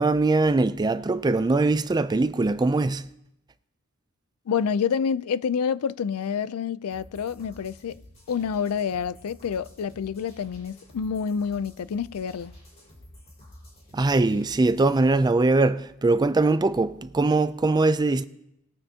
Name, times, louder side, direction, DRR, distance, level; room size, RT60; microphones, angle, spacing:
voice 1, 0.0-3.1 13.9-18.2, right 3 dB, 20° right, 0.3 m, -22 dB
voice 2, 4.5-8.0 8.3-12.5, left 7 dB, 85° left, 0.4 m, -28 dB
sound 1, 6.9-14.9, left 1 dB, 30° left, 4.8 m, -50 dB
20.5 x 8.8 x 2.8 m
head